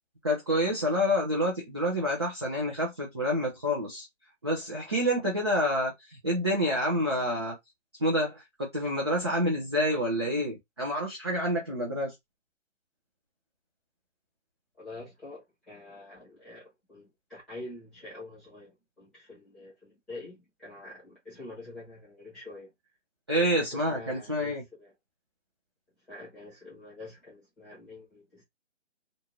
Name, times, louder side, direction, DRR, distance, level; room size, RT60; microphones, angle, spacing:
voice 1, 0.2-4.1 4.4-7.6 8.0-12.1 23.3-24.6, equal, 20° right, 0.5 m, -28 dB
voice 2, 14.8-22.7 23.3-24.9 26.1-28.4, left 2 dB, ahead, 0.9 m, -46 dB
2.6 x 2.4 x 2.8 m
figure-of-eight pair, 150°, 38 cm